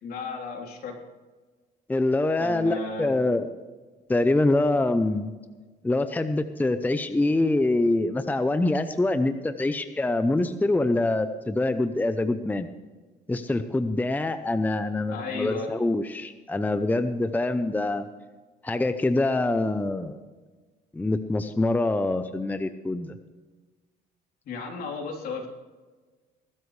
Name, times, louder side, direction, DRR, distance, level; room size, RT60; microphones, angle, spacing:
voice 1, 0.0-1.0 2.4-3.2 15.1-15.7 24.5-25.5, left 4 dB, 65° left, 1 dB, 3.5 m, -34 dB
voice 2, 1.9-3.6 4.1-5.3 5.8-12.7 13.3-18.1 18.6-20.2 20.9-23.1, left 2 dB, 10° left, 10 dB, 0.7 m, -25 dB
20.5 x 12.5 x 3.3 m, 1.3 s
cardioid pair, 110°, 17 cm